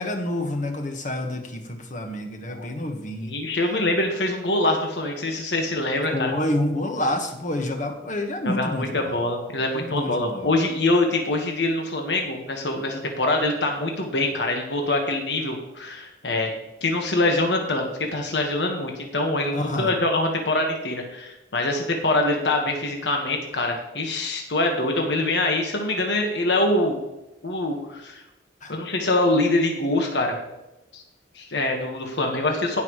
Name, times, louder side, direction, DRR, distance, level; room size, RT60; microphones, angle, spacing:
voice 1, 0.0-3.3 6.1-9.2 9.7-10.5 19.5-19.9 28.6-28.8, left 1 dB, 45° left, 4 dB, 1.4 m, -28 dB
voice 2, 3.2-6.3 8.4-16.5 16.8-27.0 27.4-28.2 28.7-30.4 30.9-31.0 31.3-32.8, left 2 dB, 75° left, 2 dB, 1.5 m, -24 dB
16.0 x 5.9 x 3.1 m, 0.97 s
head